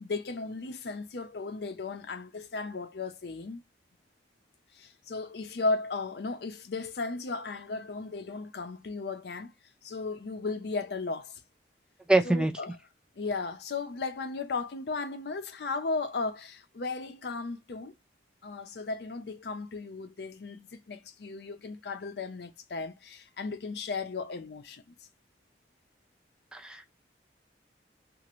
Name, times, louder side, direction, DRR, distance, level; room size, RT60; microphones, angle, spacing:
voice 1, 0.0-3.6 4.7-9.5 9.8-11.4 12.2-12.8 13.2-17.9 18.4-24.9, left 3 dB, 65° left, 0.5 m, -35 dB
voice 2, 12.1-12.5 26.5-26.9, right 2 dB, 5° right, 0.4 m, -24 dB
2.8 x 2.5 x 3.0 m
head